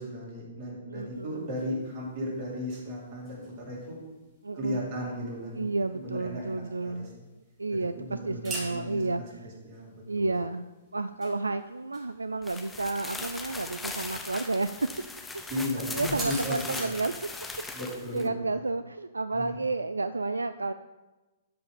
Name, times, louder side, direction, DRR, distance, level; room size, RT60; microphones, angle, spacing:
voice 1, 0.0-4.0 4.5-7.1 7.7-9.3 9.6-10.3 15.5-16.9 17.7-18.6 19.3-19.6, left 1 dB, 40° right, -3 dB, 3.2 m, -36 dB
voice 2, 0.9-1.4 4.4-4.9 5.6-7.1 7.6-9.4 10.1-10.6 10.9-14.7 15.9-17.1 18.1-20.7, right 3 dB, 80° right, 12 dB, 0.3 m, -31 dB
sound 1, 1.1-16.9, right 2 dB, 20° right, 3.4 m, -47 dB
sound 2, 12.4-18.3, left 3 dB, 5° left, 0.8 m, -39 dB
12.5 x 4.9 x 5.2 m, 1.1 s
figure-of-eight pair, 120°, 0 cm